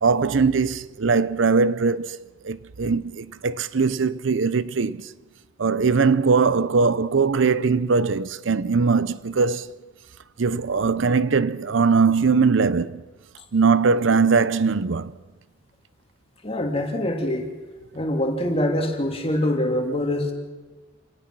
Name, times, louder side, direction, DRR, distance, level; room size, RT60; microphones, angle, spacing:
voice 1, 0.0-5.1 5.6-9.8 10.4-13.0 13.5-15.1, right 4 dB, 70° right, 0.6 m, -21 dB
voice 2, 16.4-17.5 17.9-20.3, left 1 dB, 30° left, 2.9 m, -24 dB
28.0 x 18.5 x 6.1 m
head